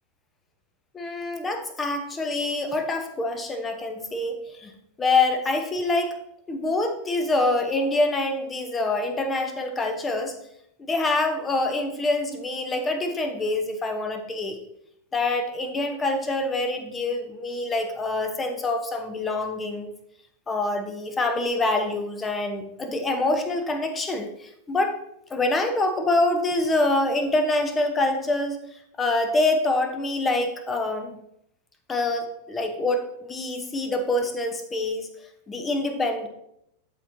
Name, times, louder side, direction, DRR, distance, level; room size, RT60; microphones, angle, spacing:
voice 1, 0.9-4.7 5.0-6.2 6.5-10.3 10.8-14.6 15.1-19.9 20.5-25.0 25.3-28.6 29.0-31.2 31.9-35.1 35.5-36.3, left 2 dB, 15° left, 7 dB, 1.0 m, -25 dB
12.5 x 4.4 x 2.7 m, 0.78 s
figure-of-eight pair, 90°, 0 cm